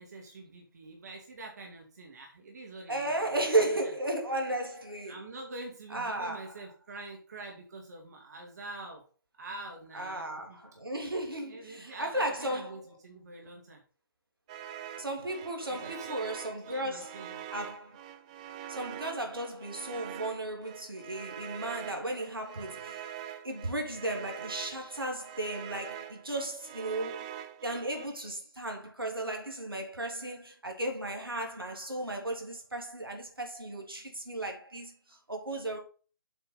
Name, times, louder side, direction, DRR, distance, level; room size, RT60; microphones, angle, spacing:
voice 1, 0.0-3.4 3.7-3.9 5.1-9.1 9.4-10.6 11.5-13.8 15.7-16.3 16.7-17.4, right 2 dB, 50° right, 2.2 m, -45 dB
voice 2, 2.9-5.2 5.9-6.5 9.9-12.8 15.0-17.2 17.5-18.0 18.7-23.1 23.4-27.3 27.6-35.8, right 1 dB, 80° right, 3.3 m, -35 dB
sound 1, 14.5-28.1, right 11 dB, 20° right, 0.5 m, -44 dB
7.8 x 5.4 x 5.6 m
figure-of-eight pair, 140°, 12 cm